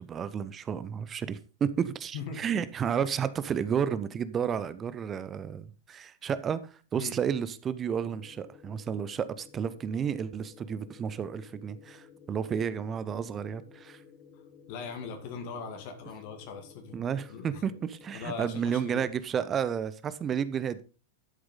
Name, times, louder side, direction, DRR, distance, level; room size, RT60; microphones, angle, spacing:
voice 1, 0.0-14.0 16.9-20.8, right 7 dB, 25° right, 0.7 m, -32 dB
sound 1, 7.8-19.1, left 6 dB, 30° left, 2.2 m, -55 dB
voice 2, 14.7-17.0 17.3-17.6 18.1-19.0, left 5 dB, 50° left, 2.2 m, -40 dB
12.0 x 7.9 x 3.8 m
figure-of-eight pair, 90°, 0 cm